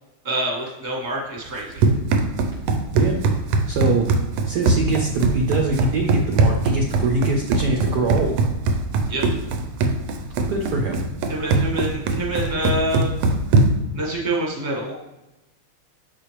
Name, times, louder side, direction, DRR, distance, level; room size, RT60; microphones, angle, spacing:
voice 1, 0.2-1.8 9.1-9.2 11.3-13.1 13.9-14.9, right 1 dB, 25° right, -3 dB, 1.4 m, -26 dB
Run, 1.5-13.9, right 3 dB, 85° right, 1.5 m, -21 dB
voice 2, 3.7-4.1 4.4-8.4 10.5-11.0, right 2 dB, 65° right, 1 dB, 1.1 m, -23 dB
6.7 x 4.8 x 3.0 m, 0.98 s
omnidirectional pair, 2.3 m